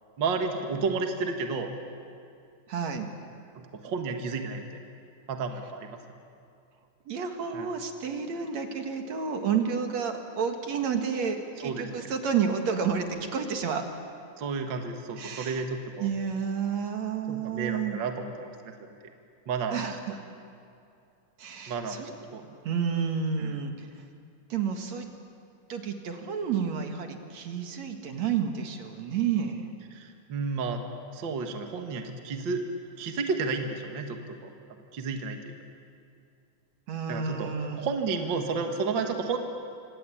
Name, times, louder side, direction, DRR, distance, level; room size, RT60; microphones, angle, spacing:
voice 1, 0.2-1.8 3.6-4.6 5.3-6.0 7.5-7.7 11.6-11.9 14.4-16.1 17.3-18.9 19.5-19.8 21.7-22.1 22.3-22.4 23.4-23.6 29.9-30.8 31.1-32.6 33.0-34.5 34.9-35.5 37.1-39.4, right 4 dB, 45° right, 4 dB, 2.0 m, -32 dB
voice 2, 2.7-3.1 7.1-13.8 15.2-15.6 16.0-18.0 19.7-20.2 21.4-22.1 22.6-23.7 24.5-25.1 25.7-29.7 36.9-37.8, right 6 dB, 60° right, 5 dB, 3.0 m, -30 dB
26.0 x 26.0 x 8.7 m, 2.5 s
omnidirectional pair, 3.5 m